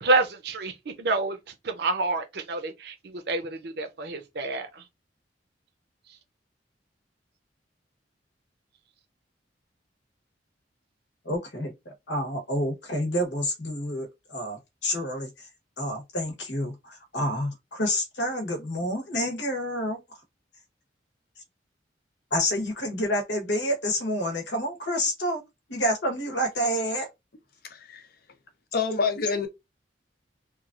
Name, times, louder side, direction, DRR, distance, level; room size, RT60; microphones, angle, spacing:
voice 1, 0.0-1.4 1.6-4.8, right 2 dB, 65° right, 0.6 m, -28 dB
voice 2, 11.2-15.3 15.8-20.0 22.3-25.4 25.7-27.1, equal, 75° left, 1.0 m, -28 dB
voice 3, 27.7-28.0 28.7-29.5, left 5 dB, 55° left, 0.6 m, -27 dB
3.0 x 2.4 x 2.4 m
head